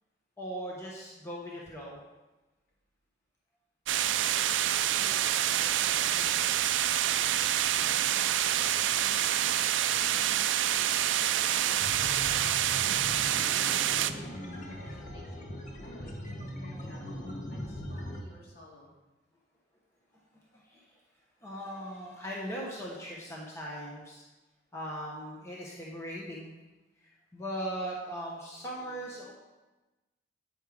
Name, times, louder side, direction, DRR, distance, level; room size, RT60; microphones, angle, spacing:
voice 1, 0.4-2.0 12.0-12.3 13.4-14.9 20.5-21.0 21.4-24.2 24.7-26.5 27.0-29.3, equal, 15° left, -4 dB, 1.0 m, -40 dB
sound 1, 3.9-14.1, right 11 dB, 85° right, 0.4 m, -27 dB
voice 2, 4.0-9.2 9.9-10.9 11.2-14.0 14.7-18.9, equal, 60° left, -4 dB, 2.3 m, -54 dB
sound 2, 11.8-18.2, equal, 45° left, 1.0 m, -40 dB
8.3 x 5.4 x 4.9 m, 1.1 s
head